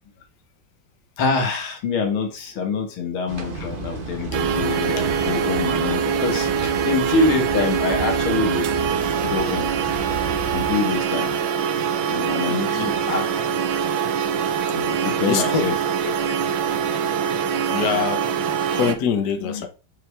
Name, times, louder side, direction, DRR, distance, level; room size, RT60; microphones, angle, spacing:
voice 1, 1.2-8.7 9.2-9.7 10.5-11.4 12.1-13.2 13.5-13.6 14.7-15.8 19.4-19.6, left 4 dB, 85° left, 2.5 m, -25 dB
sound 1, 3.3-10.8, right 3 dB, 35° right, 1.0 m, -32 dB
sound 2, 4.3-18.9, right 7 dB, 75° right, 1.7 m, -23 dB
voice 2, 12.5-13.0 15.0-15.7 17.7-18.2 18.7-19.7, left 7 dB, 55° left, 1.6 m, -25 dB
7.7 x 5.8 x 3.4 m
omnidirectional pair, 2.2 m